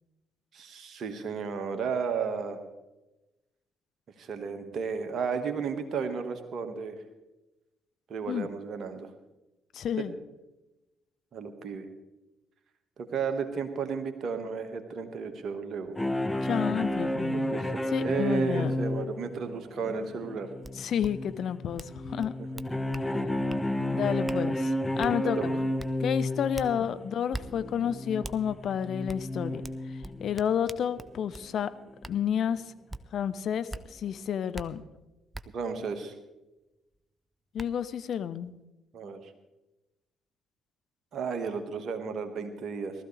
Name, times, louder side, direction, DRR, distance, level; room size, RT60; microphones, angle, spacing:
voice 1, 0.5-2.6 4.2-7.0 8.1-9.1 10.0-10.1 11.3-11.9 13.0-15.9 17.3-17.7 18.0-20.5 22.4-22.5 25.2-25.5 35.5-36.1 38.9-39.3 41.1-42.9, right 5 dB, 50° right, 7 dB, 1.6 m, -33 dB
voice 2, 9.7-10.1 16.4-17.5 17.9-18.7 20.8-22.3 23.9-25.6 26.0-29.6 30.2-31.7 32.1-32.6 33.1-34.8 37.5-38.5, left 8 dB, 55° left, 12 dB, 0.6 m, -30 dB
sound 1, 16.0-30.5 31.0-31.3 31.7-31.8 32.2-32.3, left 1 dB, 10° left, 0.9 m, -32 dB
sound 2, 20.6-20.7 21.0-21.1 21.8-21.9 22.2-23.1 23.5-23.6 24.3-24.4 25.0-25.1 25.8-25.9 26.5-26.7 27.3-27.5 28.2-28.4 29.1-29.2 29.6-31.5 32.0-32.2 32.9-33.0 33.7-33.8 34.5-34.7 35.3-35.4 36.9-37.0 37.6-37.7, right 2 dB, 20° right, 0.7 m, -41 dB
19.5 x 13.5 x 3.4 m, 1.0 s
figure-of-eight pair, 45°, 0 cm